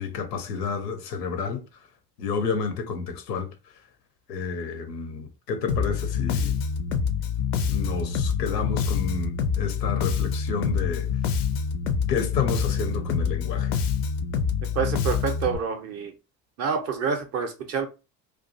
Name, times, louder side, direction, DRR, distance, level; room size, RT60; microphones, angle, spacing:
voice 1, 0.0-1.6 2.2-3.5 4.3-6.6 7.6-11.1 12.1-13.8, left 5 dB, 75° left, 0.7 m, -30 dB
Bass guitar, 5.7-15.6, left 6 dB, 45° left, 0.4 m, -26 dB
voice 2, 14.7-16.1 16.6-17.9, right 6 dB, 35° right, 0.5 m, -27 dB
2.3 x 2.2 x 2.6 m
figure-of-eight pair, 70°, 49 cm